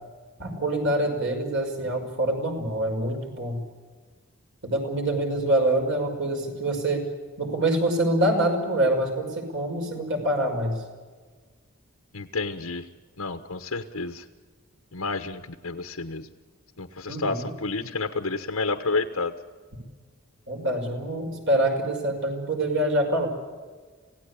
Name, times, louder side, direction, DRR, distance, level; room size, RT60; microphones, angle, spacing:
voice 1, 0.4-3.6 4.6-7.0 7.4-10.8 17.1-17.5 20.5-23.3, right 1 dB, 60° right, 2 dB, 5.7 m, -25 dB
voice 2, 12.1-12.8 13.2-14.2 14.9-16.3 16.8-19.3, left 3 dB, 90° left, 6 dB, 1.2 m, -30 dB
27.0 x 17.0 x 8.4 m, 1.5 s
head